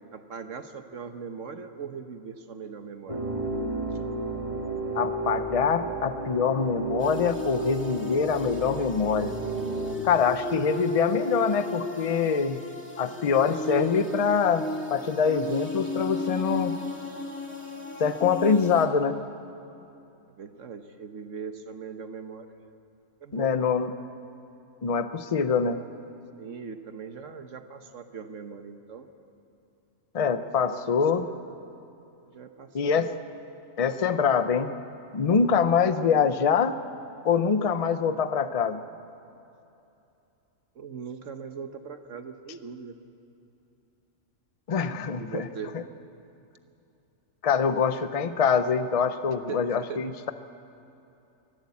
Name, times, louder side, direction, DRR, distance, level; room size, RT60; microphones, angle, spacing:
voice 1, 0.1-3.2 20.3-22.5 23.2-23.7 26.4-29.1 30.6-31.3 32.2-33.1 40.7-43.0 45.2-45.7 49.5-50.0, right 6 dB, 75° right, 8 dB, 1.4 m, -40 dB
sound 1, 3.1-10.0, right 2 dB, 25° right, 2.1 m, -32 dB
voice 2, 4.9-9.3 10.0-12.6 13.0-16.8 18.0-19.2 23.3-23.9 24.8-25.8 30.1-31.3 32.7-33.1 33.8-34.7 35.1-36.7 37.2-38.8 44.7-45.5 45.7-45.8 47.4-50.3, left 6 dB, 35° left, 10 dB, 0.7 m, -24 dB
sound 2, 7.0-18.8, left 2 dB, 10° left, 2.5 m, -35 dB
23.5 x 16.0 x 8.4 m, 2.8 s
omnidirectional pair, 1.3 m